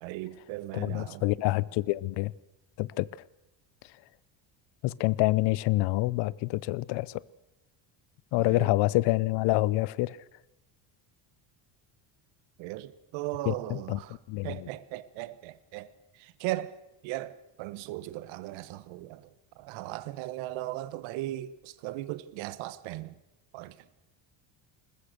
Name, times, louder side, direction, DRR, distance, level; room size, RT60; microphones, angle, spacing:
voice 1, 0.0-1.2 8.4-8.7 12.6-14.2 14.4-16.8 17.0-23.2 23.5-23.9, right 16 dB, 80° right, 1.3 m, -38 dB
voice 2, 0.7-2.3 2.8-3.1 4.8-7.2 8.3-10.2 13.5-14.0 14.3-14.7, left 19 dB, 60° left, 0.7 m, -27 dB
21.0 x 20.5 x 6.7 m
cardioid pair, 170°, 46 cm